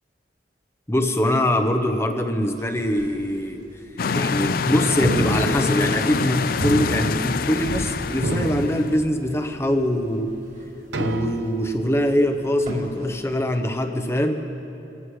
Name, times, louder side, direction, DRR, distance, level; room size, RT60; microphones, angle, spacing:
voice 1, 0.9-3.6 4.1-10.3 11.0-14.4, equal, 15° left, 5 dB, 0.8 m, -23 dB
sound 1, 2.3-13.6 13.8-13.9, equal, 45° right, 4.6 m, -44 dB
sound 2, 4.0-9.0, left 5 dB, 50° left, 0.4 m, -25 dB
sound 3, 5.0-6.3 6.6-7.9 8.2-9.5 10.0-10.1 10.9-11.8, right 2 dB, 75° right, 0.8 m, -29 dB
25.5 x 14.5 x 3.2 m, 2.8 s
head